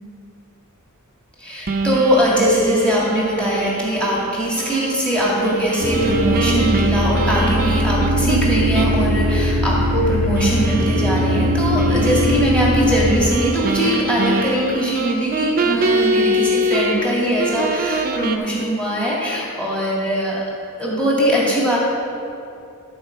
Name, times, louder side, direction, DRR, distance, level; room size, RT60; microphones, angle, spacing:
voice 1, 1.4-20.4 20.8-21.8, equal, 5° left, -6 dB, 2.3 m, -21 dB
sound 1, 1.7-8.4 8.7-9.0 9.3-9.4 10.3-17.1 17.4-18.4, right 2 dB, 40° right, 0.6 m, -25 dB
sound 2, 5.8-13.1, equal, 45° left, 1.8 m, -20 dB
12.5 x 4.8 x 6.6 m, 2.6 s
head